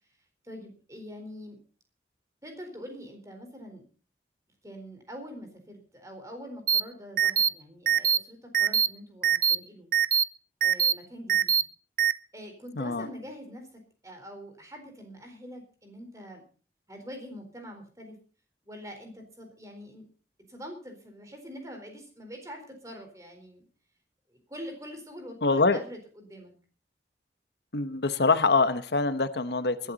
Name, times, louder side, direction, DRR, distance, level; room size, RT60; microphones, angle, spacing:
voice 1, 0.4-1.6 2.4-3.8 4.6-9.9 10.6-11.6 12.3-16.4 16.9-18.2 18.6-20.1 20.5-23.7 24.3-26.5, equal, 20° right, 4 dB, 4.2 m, -44 dB
sound 1, 6.7-6.8 7.2-7.5 7.9-8.2 8.5-8.9 9.2-9.6 9.9-10.2 10.6-10.9 11.3-11.6 12.0-12.1, right 9 dB, 50° right, 0.7 m, -22 dB
voice 2, 12.8-13.1 25.4-25.8 27.7-29.9, left 3 dB, 80° left, 11 dB, 1.1 m, -24 dB
20.5 x 12.0 x 4.1 m, 0.37 s
head